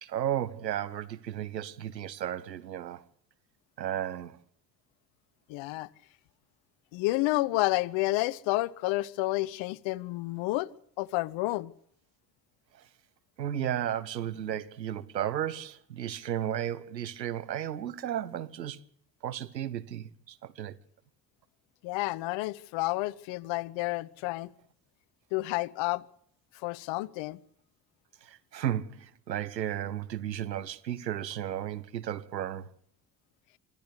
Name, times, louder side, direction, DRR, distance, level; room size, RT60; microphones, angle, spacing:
voice 1, 0.0-3.0 3.8-4.4 13.4-18.8 19.2-20.8 28.2-32.7, right 11 dB, 90° right, 0.9 m, -34 dB
voice 2, 5.5-5.9 6.9-10.7 11.0-11.7 21.8-24.5 25.3-26.0 26.6-27.4, left 19 dB, 65° left, 1.0 m, -30 dB
25.0 x 13.5 x 8.3 m
figure-of-eight pair, 45°, 49 cm